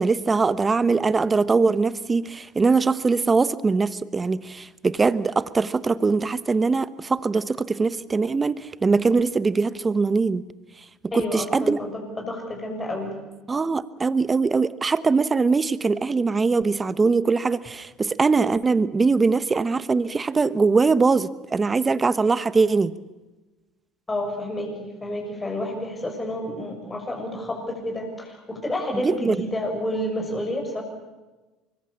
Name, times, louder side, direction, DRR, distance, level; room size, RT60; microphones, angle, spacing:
voice 1, 0.0-10.4 11.1-11.8 13.5-22.9 29.0-29.3, right 4 dB, 25° right, 15 dB, 1.1 m, -22 dB
voice 2, 11.1-13.2 24.1-30.8, left 1 dB, 20° left, 2 dB, 6.4 m, -30 dB
24.5 x 22.0 x 7.3 m, 1.2 s
supercardioid pair, 90°, 0 cm